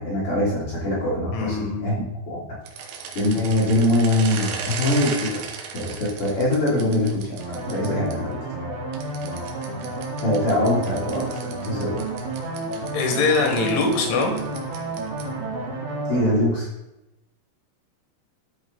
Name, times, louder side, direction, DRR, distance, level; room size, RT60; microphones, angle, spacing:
voice 1, 0.0-2.4 3.1-5.4 5.7-8.4 10.2-12.0 16.1-16.7, left 1 dB, 45° left, -6 dB, 2.1 m, -23 dB
voice 2, 1.3-1.9 12.9-14.3, left 4 dB, 75° left, 3 dB, 3.9 m, -22 dB
sound 1, 2.6-8.1 8.9-15.4, right 6 dB, 85° right, 3.7 m, -36 dB
sound 2, 7.4-16.3, right 2 dB, 60° right, 3.1 m, -31 dB
13.0 x 5.3 x 3.9 m, 0.92 s
omnidirectional pair, 5.7 m